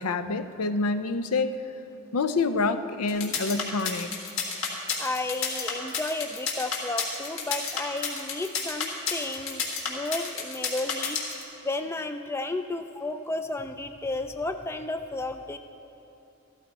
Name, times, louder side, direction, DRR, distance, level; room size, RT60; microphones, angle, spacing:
voice 1, 0.0-1.6 2.1-4.1, left 3 dB, 85° left, 10 dB, 0.6 m, -27 dB
sound 1, 3.1-11.4, left 6 dB, 65° left, 1.8 m, -30 dB
voice 2, 5.0-11.2 11.6-15.6, left 2 dB, 10° left, 8 dB, 0.3 m, -32 dB
14.0 x 13.5 x 4.2 m, 2.8 s
head